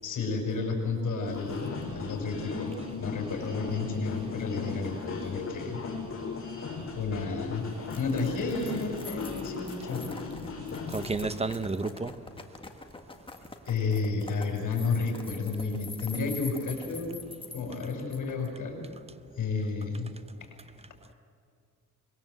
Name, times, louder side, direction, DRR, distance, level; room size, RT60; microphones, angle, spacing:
voice 1, 0.0-5.8 6.9-7.7 7.9-10.0 13.7-17.2 17.5-18.8 19.4-20.1 20.4-20.5, left 4 dB, 75° left, 1 dB, 6.0 m, -31 dB
sound 1, 1.3-11.3, left 4 dB, 45° left, 6.5 m, -37 dB
sound 2, 7.9-18.5, left 3 dB, 15° left, 1.6 m, -45 dB
voice 2, 10.9-12.1, right 3 dB, 20° right, 12 dB, 0.9 m, -31 dB
24.5 x 22.0 x 7.9 m, 2.3 s
wide cardioid pair, 140°, 31 cm